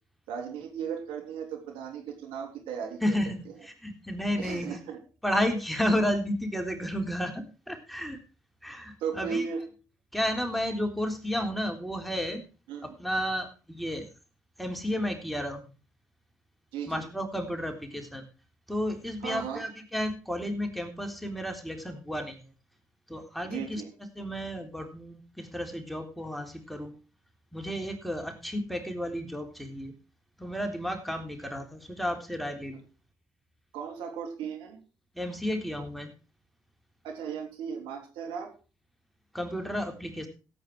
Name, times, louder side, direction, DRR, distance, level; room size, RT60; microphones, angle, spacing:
voice 1, 0.3-3.2 4.4-5.0 9.0-9.6 12.7-13.0 16.7-17.0 19.2-19.6 23.4-23.9 32.7-32.8 33.7-34.8 37.0-38.5, right 7 dB, 80° right, 2 dB, 3.4 m, -36 dB
voice 2, 3.0-4.8 5.2-8.2 8.6-9.5 10.1-12.4 12.8-14.1 14.6-15.7 16.9-18.2 18.7-22.4 23.1-23.8 24.2-26.9 27.5-29.9 30.4-32.8 35.2-36.1 39.3-40.3, equal, ahead, 4 dB, 3.7 m, -32 dB
15.5 x 8.7 x 4.7 m, 0.34 s
hypercardioid pair, 45°, 9 cm